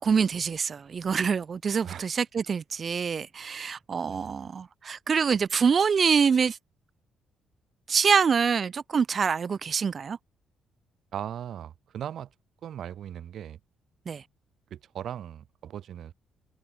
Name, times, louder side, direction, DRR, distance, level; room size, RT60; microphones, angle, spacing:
voice 1, 0.0-6.6 7.9-10.2 14.1-14.2, right 6 dB, 45° right, 0.4 m, -25 dB
voice 2, 4.1-4.4 11.1-12.3 12.6-13.6 14.7-16.1, right 10 dB, 65° right, 2.5 m, -38 dB
cardioid pair, 90°, 0 cm